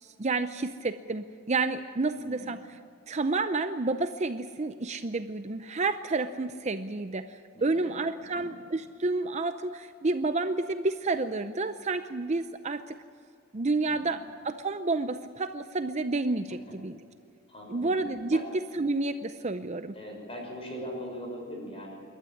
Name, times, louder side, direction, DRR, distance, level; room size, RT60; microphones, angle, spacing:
voice 1, 0.0-2.6 3.1-13.0 13.5-17.0 17.7-18.4 18.8-19.9, right 3 dB, 30° right, 9 dB, 0.6 m, -30 dB
voice 2, 2.2-2.6 7.5-8.5 13.8-14.2 16.7-16.8 17.5-17.9 18.3-18.4 19.9-21.9, equal, 25° left, 1 dB, 5.9 m, -41 dB
27.5 x 12.5 x 9.9 m, 2.4 s
head